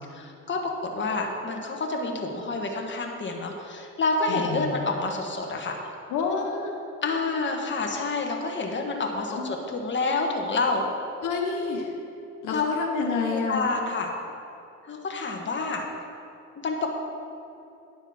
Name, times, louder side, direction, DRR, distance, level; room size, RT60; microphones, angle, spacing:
voice 1, 0.1-5.8 7.0-10.9 12.5-12.6 13.2-14.1 14.9-15.8 16.6-16.9, left 3 dB, 40° left, 1 dB, 1.5 m, -28 dB
voice 2, 4.3-4.8 6.1-6.7 9.3-9.5 11.2-11.9 12.4-13.6, left 4 dB, 80° left, 1 dB, 1.3 m, -28 dB
10.5 x 7.1 x 5.8 m, 2.8 s
cardioid pair, 90°, 30 cm